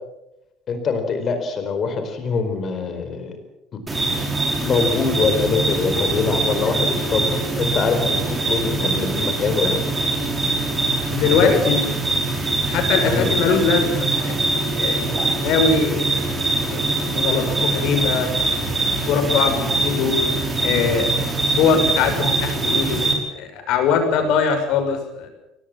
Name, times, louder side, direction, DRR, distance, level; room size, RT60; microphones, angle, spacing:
voice 1, 0.7-3.4 3.7-3.8 4.6-7.3 7.6-10.1 11.2-11.8 13.0-13.4, left 5 dB, 35° left, 7 dB, 4.4 m, -23 dB
sound 1, 3.9-23.1, right 2 dB, 15° right, 5.0 m, -23 dB
voice 2, 11.1-11.5 12.7-16.2 16.7-16.9 17.1-18.3 19.1-20.2 20.6-21.1 21.6-25.3, left 6 dB, 65° left, 5 dB, 6.3 m, -22 dB
24.0 x 18.5 x 7.5 m, 0.90 s
cardioid pair, 155°, 0 cm